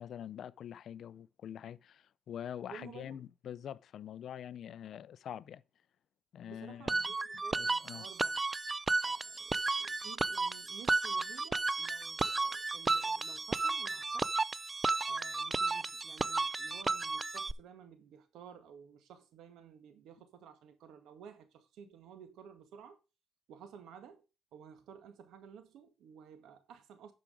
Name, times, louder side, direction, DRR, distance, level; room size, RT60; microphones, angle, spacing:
voice 1, 0.0-5.6 6.3-7.0 7.5-8.0, left 9 dB, 65° left, 0.5 m, -45 dB
voice 2, 2.7-3.2 6.5-8.4 9.0-14.5 15.0-23.0 23.5-27.1, right 7 dB, 80° right, 1.8 m, -54 dB
sound 1, 6.9-17.5, right 3 dB, 25° right, 0.4 m, -33 dB
12.0 x 5.0 x 4.9 m
cardioid pair, 85°, 0 cm